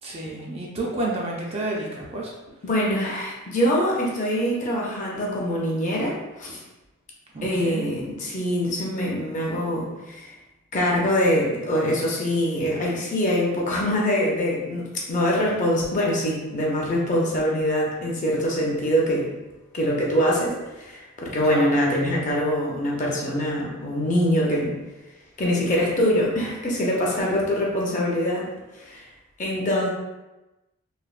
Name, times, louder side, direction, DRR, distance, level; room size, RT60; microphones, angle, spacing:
voice 1, 0.0-2.3 7.3-7.8 21.4-21.8, right 1 dB, 25° right, -3 dB, 0.3 m, -30 dB
voice 2, 2.6-6.6 7.4-10.3 10.7-19.3 19.7-24.7 25.4-28.5 28.7-29.1 29.4-29.9, equal, 35° left, -3 dB, 0.5 m, -24 dB
3.2 x 2.1 x 2.4 m, 1.1 s
head